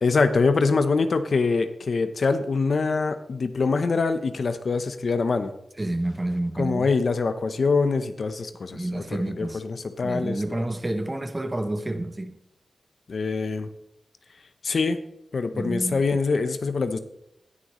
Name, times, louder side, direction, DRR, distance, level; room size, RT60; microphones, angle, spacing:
voice 1, 0.0-5.5 6.6-10.6 13.1-13.7 14.6-15.0 15.3-17.0, left 4 dB, 65° left, 0.8 m, -24 dB
voice 2, 5.8-6.9 8.7-9.6 10.0-12.3 15.5-16.0, right 1 dB, 25° right, 0.9 m, -29 dB
18.5 x 6.6 x 3.1 m
wide cardioid pair, 90°, 0 cm